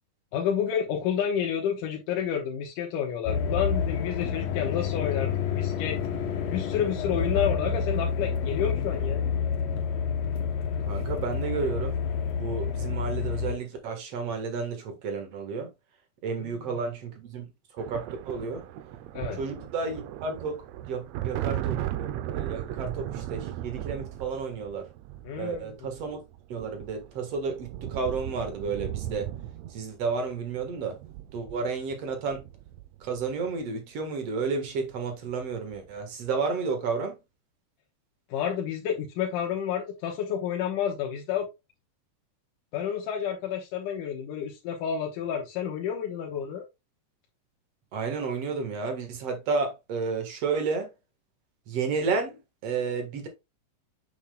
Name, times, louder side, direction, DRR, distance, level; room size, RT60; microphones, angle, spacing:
voice 1, 0.3-6.0 6.5-9.2 16.4-16.7 19.1-19.4 25.2-25.8 38.3-41.5 42.7-46.6, left 8 dB, 90° left, 2.6 m, -30 dB
sound 1, 3.3-13.6, left 6 dB, 70° left, 1.8 m, -29 dB
voice 2, 10.8-12.0 12.4-15.7 16.2-17.5 17.7-18.6 19.4-24.9 25.3-26.2 26.5-29.3 29.7-31.0 31.3-32.5 33.0-37.2 47.9-50.9 51.7-53.3, right 4 dB, 55° right, 2.4 m, -31 dB
sound 2, 17.8-33.5 34.7-34.9 35.2-35.9, right 12 dB, 80° right, 1.5 m, -37 dB
7.3 x 7.0 x 2.3 m
omnidirectional pair, 3.7 m